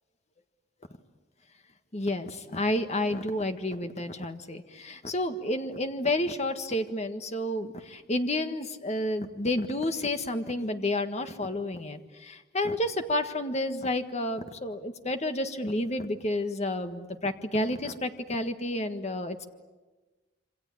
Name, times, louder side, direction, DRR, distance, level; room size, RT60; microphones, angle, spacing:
voice 1, 1.9-19.5, left 1 dB, 40° left, 7 dB, 1.6 m, -30 dB
27.0 x 26.0 x 8.5 m, 1.2 s
head